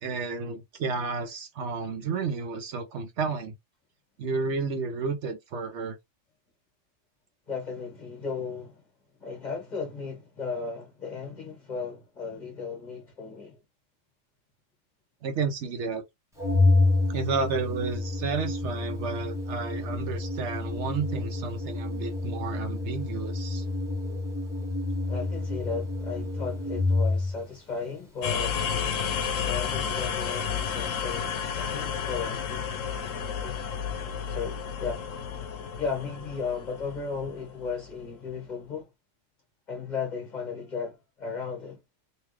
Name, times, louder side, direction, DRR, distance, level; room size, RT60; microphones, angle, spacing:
voice 1, 0.0-3.5 4.2-6.0 15.2-16.0 17.1-23.7, right 4 dB, 65° right, 0.9 m, -31 dB
voice 2, 7.5-8.8 9.2-13.6 25.1-28.6 29.4-32.7 33.4-33.6 34.3-35.1 35.8-38.9 39.7-41.8, left 5 dB, 35° left, 1.7 m, -35 dB
Organ, 16.4-27.4, left 2 dB, ahead, 1.2 m, -28 dB
sound 1, 28.2-38.0, left 7 dB, 80° left, 1.0 m, -32 dB
3.4 x 2.6 x 3.1 m
omnidirectional pair, 1.3 m